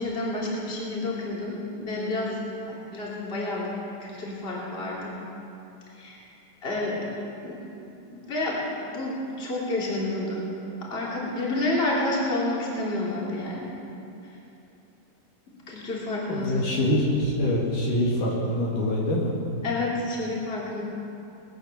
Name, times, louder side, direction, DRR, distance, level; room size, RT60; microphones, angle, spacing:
voice 1, 0.0-2.4 2.7-3.7 4.0-5.1 5.9-6.2 6.6-7.1 7.4-7.6 8.1-8.6 8.9-10.5 10.8-13.7 15.7-16.6 19.6-20.8, left 2 dB, 15° left, -5 dB, 2.7 m, -29 dB
voice 2, 16.3-19.3, left 1 dB, 60° left, -4 dB, 3.2 m, -25 dB
21.5 x 9.2 x 6.8 m, 2.9 s
omnidirectional pair, 4.6 m